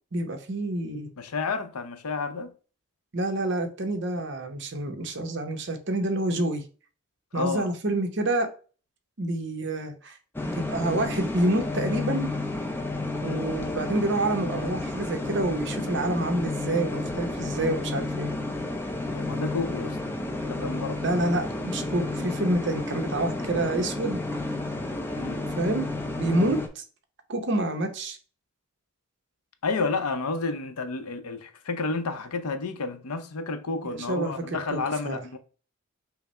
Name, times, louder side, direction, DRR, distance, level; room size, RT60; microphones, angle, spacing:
voice 1, 0.1-1.1 3.1-6.6 7.3-8.5 9.2-10.2 10.5-12.3 13.2-18.3 21.0-24.2 25.6-25.9 26.2-26.8 27.3-28.2 33.8-34.8 35.0-35.2, right 1 dB, 50° right, 0.8 m, -28 dB
voice 2, 1.2-2.5 7.3-7.7 13.2-13.4 19.1-20.0 20.3-21.0 25.2-25.4 29.6-35.4, left 4 dB, 90° left, 0.6 m, -31 dB
sound 1, 10.3-26.7, left 2 dB, 10° left, 0.4 m, -31 dB
5.7 x 2.0 x 4.2 m
head